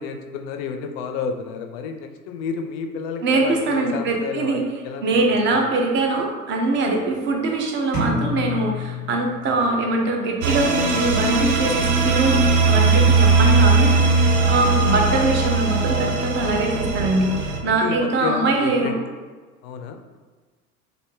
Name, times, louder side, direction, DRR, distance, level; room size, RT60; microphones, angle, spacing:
voice 1, 0.0-5.2 5.5-5.7 14.5-14.9 17.6-19.0 19.6-20.2, left 6 dB, 45° left, 5 dB, 0.4 m, -31 dB
voice 2, 3.2-4.6 5.0-14.0 14.5-19.0, right 2 dB, 25° right, 2 dB, 0.5 m, -22 dB
sound 1, 7.9-9.8, left 2 dB, 85° right, 1.3 m, -28 dB
sound 2, 10.4-17.6, right 4 dB, 70° right, 0.6 m, -19 dB
3.1 x 2.5 x 3.2 m, 1.4 s
figure-of-eight pair, 75°, 46 cm